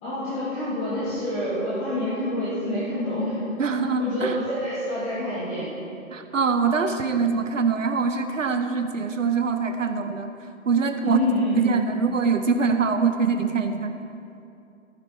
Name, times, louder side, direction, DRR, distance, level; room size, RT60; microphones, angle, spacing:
voice 1, 0.0-3.4 4.0-5.7 11.0-11.6, left 1 dB, 15° left, -11 dB, 2.6 m, -27 dB
voice 2, 3.6-4.4 6.1-10.3 10.7-11.2 11.5-14.0, right 5 dB, 65° right, 7 dB, 0.9 m, -23 dB
15.0 x 9.5 x 4.4 m, 2.6 s
figure-of-eight pair, 140°, 41 cm